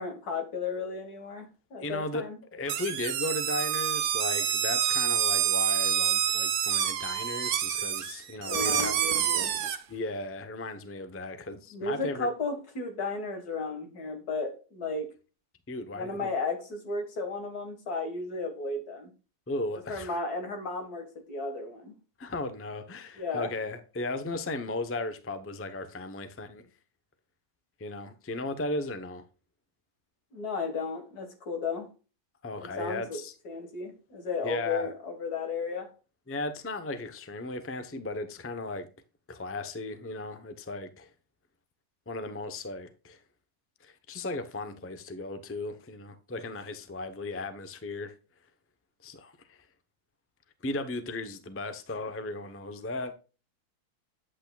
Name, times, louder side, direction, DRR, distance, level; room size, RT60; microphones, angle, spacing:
voice 1, 0.0-2.4 8.5-9.5 11.7-15.1 15.9-19.1 19.9-21.9 23.2-23.5 30.3-31.9 32.6-33.2 33.4-35.9, left 3 dB, 75° left, 2.2 m, -34 dB
voice 2, 1.8-9.0 9.9-12.3 15.7-16.3 19.5-20.2 22.2-26.7 27.8-29.2 32.4-33.3 34.4-34.9 36.3-38.9 39.3-41.1 42.1-43.2 43.8-48.1 49.0-49.7 50.6-53.2, left 2 dB, 15° left, 0.5 m, -36 dB
sound 1, 2.7-9.8, right 10 dB, 75° right, 1.2 m, -27 dB
8.7 x 8.2 x 2.3 m
omnidirectional pair, 1.6 m